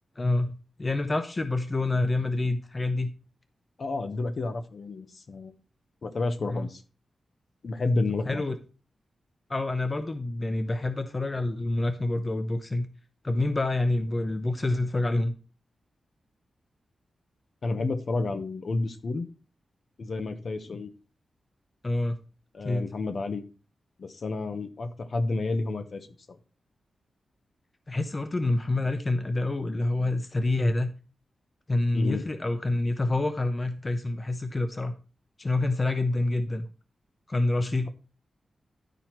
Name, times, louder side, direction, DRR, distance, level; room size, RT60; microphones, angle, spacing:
voice 1, 0.2-0.5 0.8-3.1 6.5-6.7 8.3-8.6 9.5-12.9 13.2-15.3 21.8-22.2 22.6-22.9 27.9-30.9 31.7-34.9 35.4-36.7 37.3-37.9, left 2 dB, 25° left, 8 dB, 0.8 m, -27 dB
voice 2, 3.8-5.5 6.0-6.8 7.6-8.4 17.6-19.3 20.0-20.9 22.5-23.5 24.0-26.4 31.9-32.2, left 3 dB, 55° left, 8 dB, 1.0 m, -30 dB
11.5 x 4.4 x 4.5 m, 0.36 s
wide cardioid pair, 115°, 0 cm